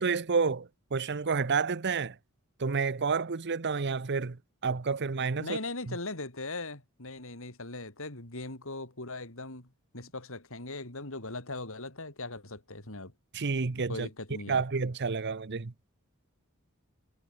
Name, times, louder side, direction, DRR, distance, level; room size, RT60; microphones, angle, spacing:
voice 1, 0.0-2.2 2.6-5.6 5.9-6.0 13.3-14.1 14.5-15.7, right 5 dB, 55° right, 0.8 m, -30 dB
voice 2, 5.4-13.1 13.9-14.6, left 2 dB, 65° left, 4.9 m, -39 dB
head